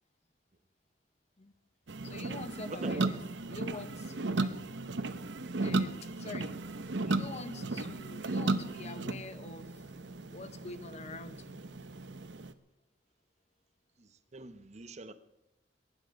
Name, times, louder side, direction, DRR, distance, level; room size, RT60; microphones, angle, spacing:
sound 1, 1.9-12.5, right 2 dB, 80° right, 0.9 m, -35 dB
voice 1, 2.0-3.2 3.5-4.8 5.6-6.6 7.0-9.8 10.3-11.6, left 3 dB, 40° left, 12 dB, 0.9 m, -46 dB
voice 2, 2.7-3.1 14.0-15.1, right 2 dB, 40° right, 11 dB, 0.9 m, -43 dB
22.5 x 10.0 x 5.2 m, 0.93 s
head